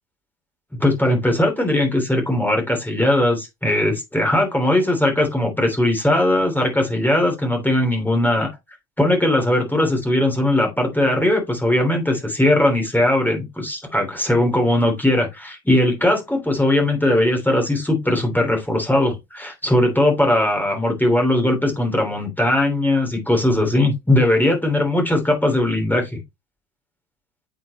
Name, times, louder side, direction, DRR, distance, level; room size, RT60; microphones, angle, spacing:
voice 1, 0.8-8.5 9.0-26.2, left 1 dB, 5° left, 3.0 m, -19 dB
8.4 x 4.8 x 3.0 m
hypercardioid pair, 90°, 47 cm